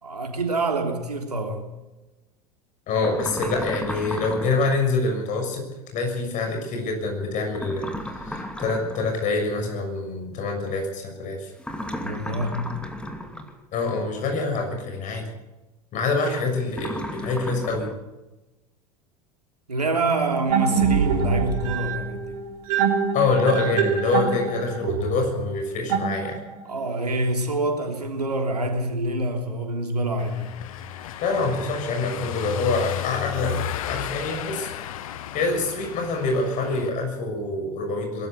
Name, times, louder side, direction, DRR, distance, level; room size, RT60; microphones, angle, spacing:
voice 1, 0.0-1.7 12.0-12.8 19.7-22.3 26.6-30.5, right 2 dB, 80° right, 3.4 m, -26 dB
voice 2, 2.9-5.7 5.9-7.9 8.1-11.5 13.7-15.3 15.9-17.9 23.1-26.4 31.2-33.6 33.8-34.7 35.3-38.3, left 3 dB, 40° left, 6.5 m, -25 dB
sound 1, 3.0-4.8 7.5-9.2 11.6-13.6 16.7-17.9, left 1 dB, 5° left, 2.6 m, -34 dB
sound 2, 20.5-26.7, right 6 dB, 60° right, 3.4 m, -25 dB
Car passing by / Engine, 30.2-36.9, left 10 dB, 60° left, 1.3 m, -33 dB
22.0 x 13.5 x 9.7 m
figure-of-eight pair, 75°, 20 cm